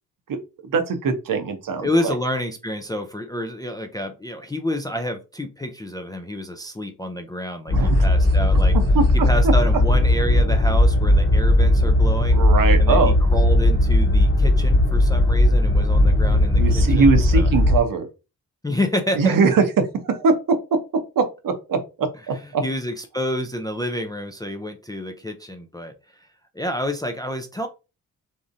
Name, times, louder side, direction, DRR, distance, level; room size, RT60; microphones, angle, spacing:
voice 1, 0.7-2.1 7.7-8.0 8.9-9.5 12.3-13.1 16.3-18.1 19.2-19.6 20.0-20.3 21.2-22.6, right 4 dB, 60° right, 6 dB, 0.7 m, -21 dB
voice 2, 1.8-8.8 9.1-12.4 12.8-17.5 18.6-19.4 22.3-26.3 26.5-27.7, left 1 dB, 10° left, 5 dB, 0.3 m, -29 dB
sound 1, 7.7-17.8, left 1 dB, 35° left, 0.9 m, -17 dB
2.5 x 2.0 x 2.5 m, 0.29 s
supercardioid pair, 40°, 38 cm